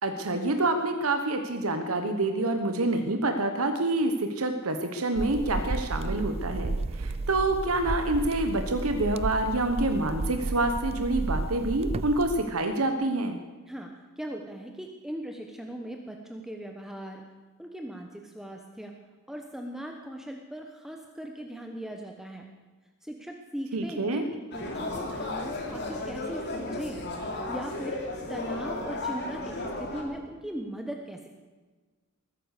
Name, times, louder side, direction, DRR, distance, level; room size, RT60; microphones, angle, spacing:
voice 1, 0.0-13.4 23.7-24.3, right 2 dB, 85° right, 6 dB, 1.2 m, -27 dB
sound 1, 5.2-12.4, right 3 dB, 30° right, 0.4 m, -33 dB
voice 2, 13.7-17.2 17.6-18.9 19.3-22.5 23.0-27.0 27.5-31.3, right 1 dB, ahead, 3 dB, 1.0 m, -39 dB
sound 2, 24.5-30.0, left 2 dB, 55° left, 3.0 m, -34 dB
20.5 x 10.0 x 6.7 m, 1.3 s
head